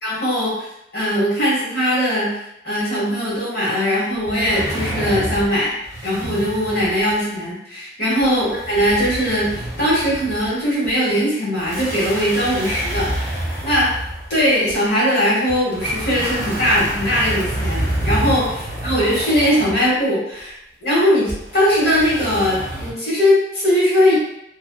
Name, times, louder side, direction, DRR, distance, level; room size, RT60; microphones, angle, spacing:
voice 1, 0.0-0.7 0.9-2.4 2.6-5.7 6.0-13.1 13.6-13.9 14.3-18.4 18.8-20.5 20.8-24.1, equal, 60° left, -8 dB, 1.3 m, -19 dB
sound 1, 4.3-5.5 5.8-7.1 8.2-10.5 10.8-10.9 11.6-14.7 15.5-19.9 21.3-22.9, right 1 dB, 20° right, 1.1 m, -28 dB
2.6 x 2.5 x 2.2 m, 0.80 s
head